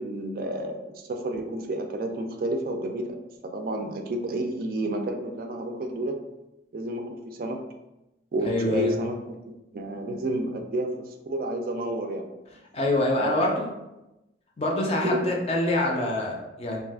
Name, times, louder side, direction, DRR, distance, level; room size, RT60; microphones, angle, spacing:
voice 1, 0.0-6.2 6.7-7.7 8.3-12.3 13.2-13.6 15.0-15.3, right 1 dB, 50° right, 4 dB, 0.3 m, -31 dB
voice 2, 8.4-9.0 12.7-13.7 14.6-16.8, left 1 dB, 35° left, 0 dB, 0.4 m, -25 dB
2.7 x 2.4 x 3.4 m, 0.95 s
head